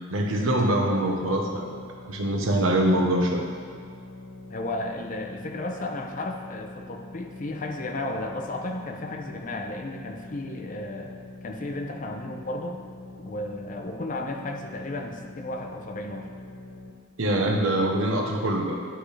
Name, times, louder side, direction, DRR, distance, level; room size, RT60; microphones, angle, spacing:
voice 1, 0.1-1.8 2.0-3.5 17.2-18.8, right 1 dB, 80° right, 0 dB, 1.0 m, -24 dB
sound 1, 1.0-16.9, left 2 dB, 75° left, 0.8 m, -44 dB
voice 2, 4.5-11.2 11.4-12.8 13.2-16.3, left 2 dB, 40° left, 3 dB, 0.7 m, -34 dB
10.0 x 6.0 x 3.3 m, 2.1 s
head